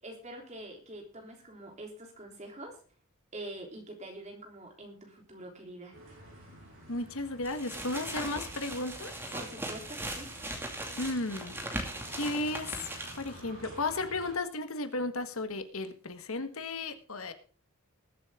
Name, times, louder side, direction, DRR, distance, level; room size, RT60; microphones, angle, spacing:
voice 1, 0.0-2.8 3.3-6.0 9.3-10.3, right 1 dB, 30° right, 2 dB, 3.6 m, -45 dB
sound 1, 5.9-14.4, right 1 dB, 55° right, 6.8 m, -51 dB
voice 2, 6.9-9.1 11.0-11.6 12.1-17.3, left 2 dB, 70° left, 9 dB, 1.5 m, -34 dB
sound 2, 7.4-13.4, right 1 dB, 10° right, 2.4 m, -39 dB
20.5 x 8.2 x 3.7 m, 0.39 s
head